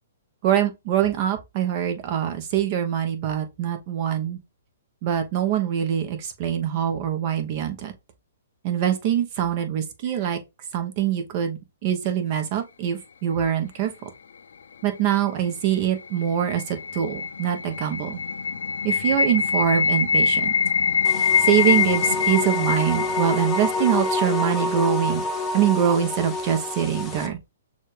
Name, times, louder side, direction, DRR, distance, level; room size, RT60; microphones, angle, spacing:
voice 1, 0.4-4.4 5.0-7.9 8.6-10.4 10.7-14.1 14.8-18.2 18.8-20.5 21.5-25.2 25.5-27.4, right 9 dB, 40° right, 1.0 m, -24 dB
sound 1, 15.7-24.7, left 6 dB, 75° left, 0.5 m, -24 dB
sound 2, 21.0-27.3, left 2 dB, 15° left, 0.8 m, -28 dB
6.4 x 2.5 x 3.3 m
hypercardioid pair, 130°, 0 cm